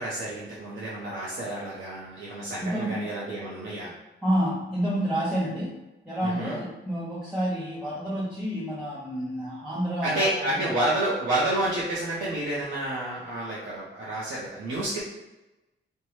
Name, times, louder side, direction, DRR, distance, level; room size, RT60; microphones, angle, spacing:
voice 1, 0.0-3.9 6.2-6.6 10.0-15.0, right 1 dB, 80° right, -6 dB, 0.8 m, -29 dB
voice 2, 2.6-2.9 4.2-5.7 6.1-10.7, equal, 5° right, -8 dB, 0.6 m, -29 dB
4.5 x 2.2 x 3.1 m, 1.0 s
wide cardioid pair, 170°, 20 cm